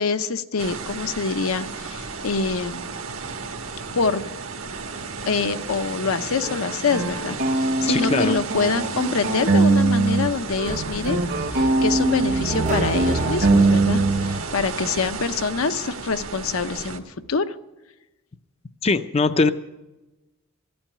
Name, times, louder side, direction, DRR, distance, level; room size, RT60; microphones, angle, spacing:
voice 1, 0.0-2.9 3.9-4.2 5.3-11.2 11.5-17.0 17.3-17.6, left 4 dB, 80° left, 10 dB, 0.7 m, -25 dB
sound 1, 0.6-17.0, right 4 dB, 75° right, 1.4 m, -33 dB
sound 2, 6.4-10.3 10.6-14.4, right 3 dB, 55° right, 1.0 m, -22 dB
voice 2, 7.9-8.4 18.8-19.5, left 3 dB, 30° left, 11 dB, 0.4 m, -21 dB
sound 3, 10.7-15.6, right 3 dB, 35° right, 0.5 m, -30 dB
14.0 x 8.7 x 9.8 m, 1.0 s
head